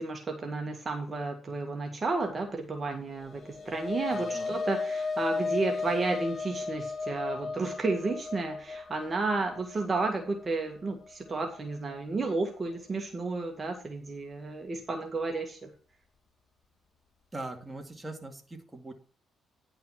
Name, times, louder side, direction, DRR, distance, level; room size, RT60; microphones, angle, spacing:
voice 1, 0.0-15.7, right 3 dB, 30° right, 3 dB, 1.7 m, -32 dB
sound 1, 3.2-11.7, left 4 dB, 40° left, 2.8 m, -35 dB
voice 2, 4.1-4.6 17.3-18.9, right 2 dB, 10° right, 3 dB, 2.3 m, -41 dB
10.5 x 5.5 x 5.9 m, 0.40 s
cardioid pair, 90°, 0 cm